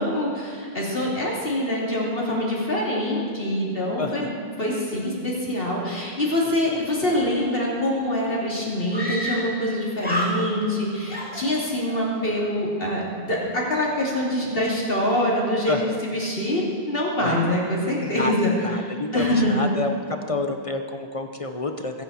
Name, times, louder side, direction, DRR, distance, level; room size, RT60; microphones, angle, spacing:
voice 1, 0.0-16.6 16.9-18.5 19.1-19.6, left 1 dB, 65° left, -4 dB, 3.2 m, -25 dB
voice 2, 4.0-4.3 15.7-16.0 17.2-17.4 18.0-18.3 18.6-19.9 20.3-22.0, left 3 dB, 35° left, 6 dB, 0.8 m, -28 dB
Screaming, 7.8-7.9 8.1-8.2 8.9-9.7 10.0-10.8 11.1-12.0, equal, 10° right, 2.2 m, -30 dB
23.0 x 9.9 x 4.3 m, 2.4 s
omnidirectional pair, 1.0 m